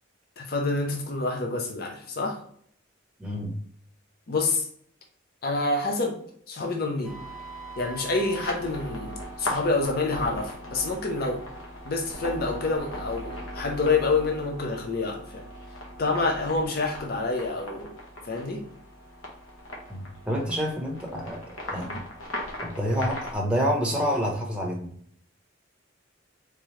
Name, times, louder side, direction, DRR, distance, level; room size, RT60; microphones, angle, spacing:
voice 1, 0.4-2.4 4.3-4.7 5.4-6.2 6.5-7.2 7.8-11.4 11.8-15.4 16.0-17.9 18.2-18.6, left 3 dB, 50° left, 1 dB, 0.6 m, -27 dB
voice 2, 3.2-3.5 19.9-22.0 22.6-24.9, equal, 5° right, -2 dB, 0.8 m, -28 dB
sound 1, 7.0-23.4, equal, 90° left, 1.1 m, -39 dB
3.6 x 3.0 x 3.1 m, 0.62 s
head